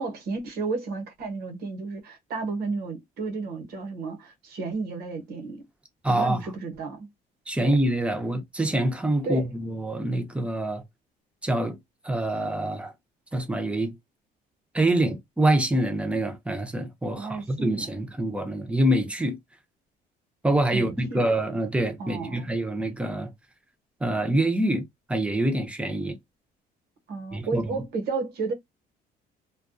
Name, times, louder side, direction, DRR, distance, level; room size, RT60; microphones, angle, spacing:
voice 1, 0.0-5.7 6.1-7.1 7.6-7.8 9.2-9.5 17.1-17.9 20.7-21.3 22.0-22.5 27.1-28.5, right 4 dB, 70° right, 1.0 m, -32 dB
voice 2, 6.0-6.4 7.5-10.8 11.4-11.8 12.0-12.9 13.3-14.0 14.7-19.4 20.4-23.3 24.0-26.2 27.3-27.7, right 1 dB, 5° right, 0.6 m, -25 dB
2.3 x 2.2 x 2.4 m
cardioid pair, 110°, 17 cm